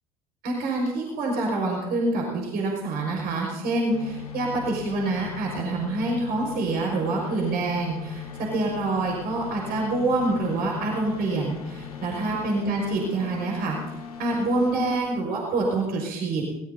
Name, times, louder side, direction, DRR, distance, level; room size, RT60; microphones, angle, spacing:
voice 1, 0.4-13.8 14.2-16.5, right 2 dB, 55° right, -1 dB, 5.3 m, -26 dB
sound 1, 3.9-15.0, left 8 dB, 85° left, 1.6 m, -39 dB
21.0 x 18.5 x 2.8 m, 1.0 s
figure-of-eight pair, 60°, 19 cm